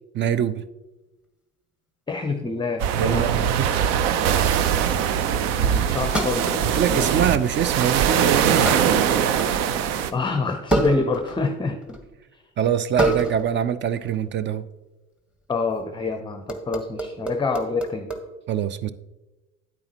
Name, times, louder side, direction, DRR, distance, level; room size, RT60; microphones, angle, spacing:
voice 1, 0.1-0.6 3.0-3.3 3.6-3.7 6.7-8.8 12.6-14.6 18.5-18.9, right 9 dB, 30° right, 15 dB, 0.4 m, -24 dB
voice 2, 2.1-3.3 5.6-7.2 10.1-12.0 12.3-12.4 15.5-18.1, left 4 dB, 10° left, 6 dB, 0.7 m, -27 dB
sound 1, 2.8-10.1, right 8 dB, 60° right, 0.7 m, -22 dB
sound 2, 6.1-6.9 7.5-7.9 8.7-9.8 10.7-11.5 11.8-12.1 13.0-13.5 13.9-14.2 15.8-16.1 16.5-18.2, right 1 dB, 5° right, 1.2 m, -28 dB
9.6 x 8.6 x 2.9 m, 1.1 s
hypercardioid pair, 70°, 38 cm